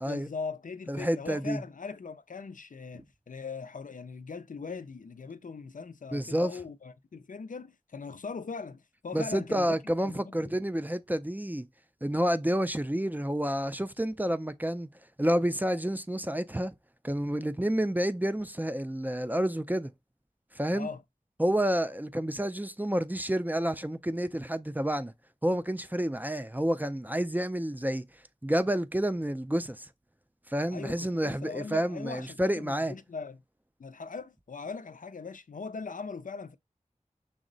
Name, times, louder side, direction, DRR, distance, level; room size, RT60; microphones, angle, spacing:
voice 1, 0.0-9.8 10.0-10.5 20.7-21.0 30.7-33.4 33.8-36.6, left 4 dB, 75° left, 0.4 m, -40 dB
voice 2, 0.9-1.6 6.1-6.5 9.1-11.7 12.0-14.9 15.2-16.7 17.0-19.9 20.5-20.9 21.4-25.1 25.4-28.0 28.4-29.9 30.5-32.9, equal, 15° right, 0.4 m, -29 dB
6.1 x 2.0 x 3.8 m
wide cardioid pair, 45°, 14 cm